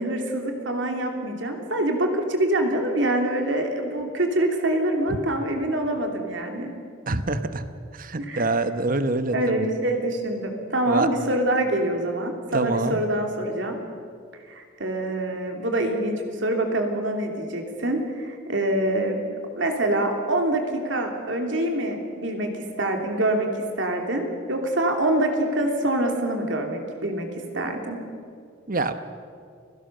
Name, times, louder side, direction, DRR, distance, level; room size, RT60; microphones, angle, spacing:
voice 1, 0.0-6.7 8.2-8.4 9.3-13.8 14.5-19.2 19.6-23.5 23.8-27.3 27.5-28.0, right 1 dB, 70° right, 3 dB, 3.0 m, -25 dB
voice 2, 7.1-7.6 7.9-9.7 10.9-11.1 12.5-13.0 28.7-29.0, right 2 dB, 45° right, 10 dB, 1.1 m, -25 dB
29.0 x 16.5 x 6.7 m, 2.2 s
head